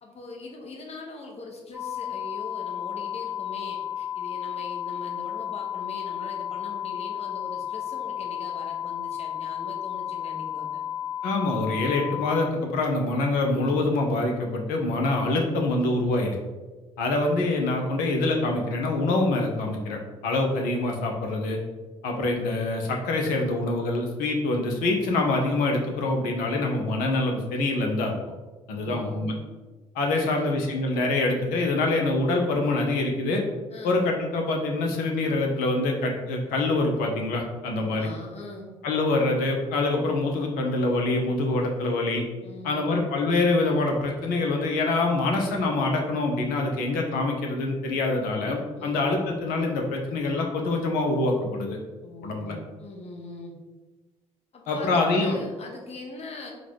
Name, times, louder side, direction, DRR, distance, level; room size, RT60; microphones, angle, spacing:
voice 1, 0.0-10.8 28.7-29.4 30.1-30.6 33.7-34.0 37.7-38.7 42.4-43.0 48.8-49.0 52.0-53.5 54.5-56.5, left 2 dB, 40° left, 0 dB, 1.1 m, -41 dB
sound 1, 1.7-12.5, left 10 dB, ahead, 1.2 m, -33 dB
voice 2, 11.2-16.4 17.0-21.6 22.0-28.2 28.7-29.3 29.9-33.4 33.8-38.1 38.8-42.2 42.6-51.8 52.2-52.6 54.7-55.3, left 2 dB, 65° left, 2 dB, 0.8 m, -25 dB
3.9 x 2.3 x 4.5 m, 1.2 s
figure-of-eight pair, 45°, 16 cm